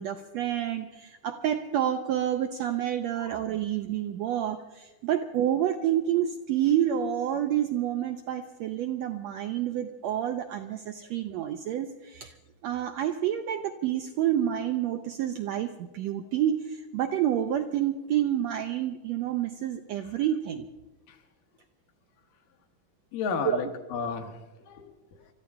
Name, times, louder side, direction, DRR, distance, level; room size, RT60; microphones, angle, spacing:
voice 1, 0.0-12.3 12.6-20.7 23.4-23.6, right 10 dB, 85° right, 6 dB, 1.5 m, -28 dB
voice 2, 23.1-25.3, left 5 dB, 90° left, 5 dB, 2.9 m, -34 dB
25.0 x 14.0 x 3.6 m, 1.1 s
omnidirectional pair, 3.7 m